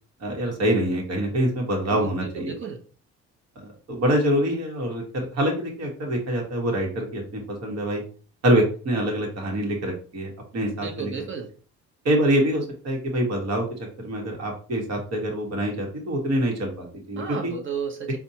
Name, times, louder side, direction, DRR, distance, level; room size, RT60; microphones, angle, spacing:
voice 1, 0.2-2.5 3.6-8.0 8.4-11.1 12.0-13.6 14.0-17.5, right 1 dB, 60° right, 0 dB, 1.2 m, -25 dB
voice 2, 1.9-2.8 10.8-11.5 17.2-18.2, right 6 dB, 40° right, 2 dB, 0.9 m, -33 dB
4.2 x 2.3 x 2.8 m, 0.39 s
cardioid pair, 90°, 30 cm